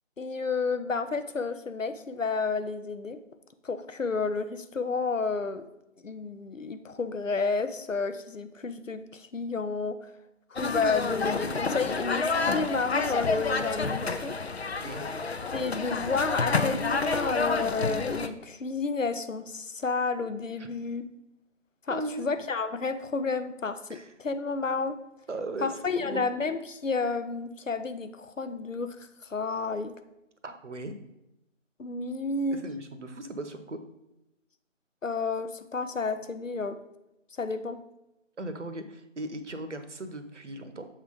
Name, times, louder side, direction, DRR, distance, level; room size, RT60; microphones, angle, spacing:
voice 1, 0.2-3.2 3.6-5.6 6.0-10.1 10.5-14.4 15.5-21.1 21.9-25.0 25.6-29.0 29.2-29.9 31.8-32.7 35.0-36.8 37.4-37.8, left 4 dB, 90° left, 10 dB, 0.7 m, -31 dB
sound 1, 10.6-18.3, left 4 dB, 55° left, 0.5 m, -29 dB
voice 2, 14.8-15.1 20.6-20.7 21.9-22.3 23.9-24.1 25.3-26.2 30.4-30.9 32.5-33.8 38.4-40.9, right 2 dB, 65° right, 9 dB, 0.9 m, -37 dB
7.2 x 3.8 x 5.0 m, 0.91 s
figure-of-eight pair, 160°, 38 cm